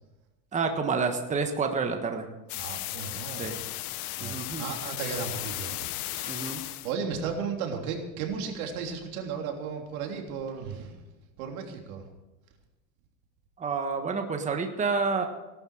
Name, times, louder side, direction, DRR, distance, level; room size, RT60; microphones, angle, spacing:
voice 1, 0.5-2.3 3.4-3.6 4.2-4.6 6.3-6.6 13.6-15.3, right 4 dB, 15° right, 5 dB, 1.4 m, -29 dB
sound 1, 2.5-6.9, left 17 dB, 90° left, 0.9 m, -35 dB
voice 2, 2.5-3.5 4.2-11.0 11.4-12.1, right 6 dB, 90° right, 2 dB, 3.3 m, -35 dB
17.5 x 12.0 x 4.9 m, 1.1 s
supercardioid pair, 140°, 42 cm